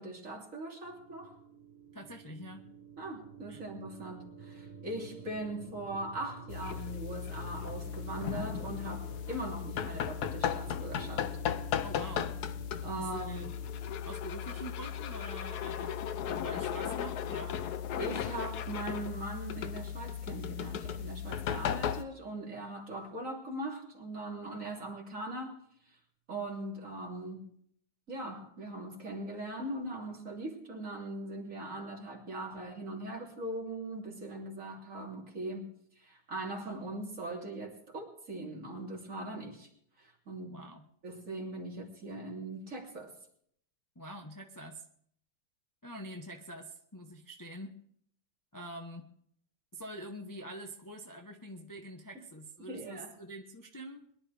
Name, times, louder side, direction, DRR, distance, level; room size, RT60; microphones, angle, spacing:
voice 1, 0.0-1.4 3.0-11.3 12.8-13.5 18.0-25.6 25.9-26.0 26.3-27.5 28.1-35.7 36.0-39.7 40.0-40.6 41.0-43.1 52.7-53.2, right 1 dB, 50° right, -1 dB, 3.5 m, -40 dB
sound 1, 0.8-14.5, right 5 dB, 30° right, 1.2 m, -50 dB
voice 2, 1.9-2.7 3.5-3.6 11.8-12.3 12.9-13.5 14.0-16.0 16.2-17.6 40.5-40.8 43.9-44.8 45.8-47.7 48.5-49.1 49.7-54.0, right 1 dB, 15° left, 2 dB, 0.9 m, -45 dB
sound 2, 6.5-22.0, left 9 dB, 70° left, 1.2 m, -36 dB
22.5 x 12.0 x 3.4 m, 0.65 s
omnidirectional pair, 1.8 m